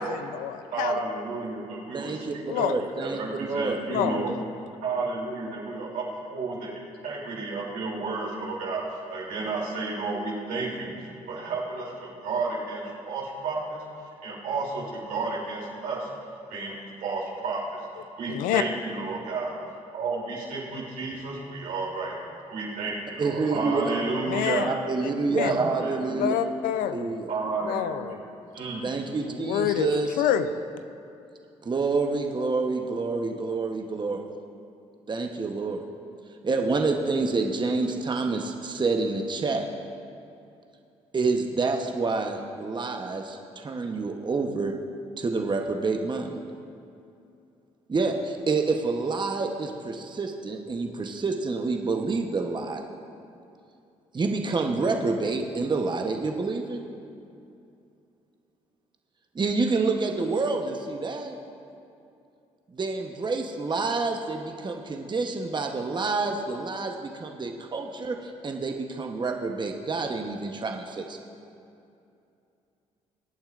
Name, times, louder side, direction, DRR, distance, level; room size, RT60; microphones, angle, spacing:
voice 1, 0.0-1.0 2.5-2.8 3.9-4.3 18.3-18.6 24.3-24.7 25.3-25.6 26.2-27.1 27.6-28.2 29.2-29.9 30.2-30.5, left 10 dB, 85° left, 10 dB, 0.5 m, -27 dB
voice 2, 0.7-2.4 3.0-4.3 4.8-6.7 7.0-10.9 11.3-13.8 14.2-16.1 16.5-16.7 17.0-17.8 18.2-19.5 19.9-22.2 22.5-24.7 25.4-26.4 27.3-28.2 28.5-28.9, right 3 dB, 80° right, -4 dB, 3.0 m, -31 dB
voice 3, 1.9-3.8 23.2-23.8 24.6-26.3 26.9-27.3 28.8-30.1 31.6-34.2 35.1-35.8 36.4-39.7 41.1-44.7 45.2-46.4 47.9-52.8 54.1-56.9 59.3-61.4 62.7-71.2, right 3 dB, 35° right, 3 dB, 0.9 m, -28 dB
22.0 x 8.8 x 2.5 m, 2.6 s
supercardioid pair, 60°, 14 cm